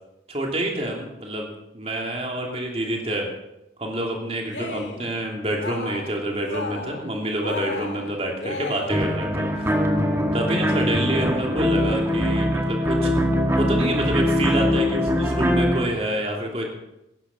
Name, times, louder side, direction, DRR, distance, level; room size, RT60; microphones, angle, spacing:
voice 1, 0.3-1.5 1.7-3.3 3.8-9.7 10.3-13.1 13.6-16.7, right 1 dB, 35° right, 1 dB, 3.1 m, -27 dB
Cheering, 4.4-5.1 5.4-6.1 6.4-7.1 7.4-9.2, left 3 dB, 75° left, 2.2 m, -34 dB
sound 1, 8.9-15.9, equal, 15° right, 1.8 m, -22 dB
17.5 x 14.5 x 5.6 m, 0.87 s
head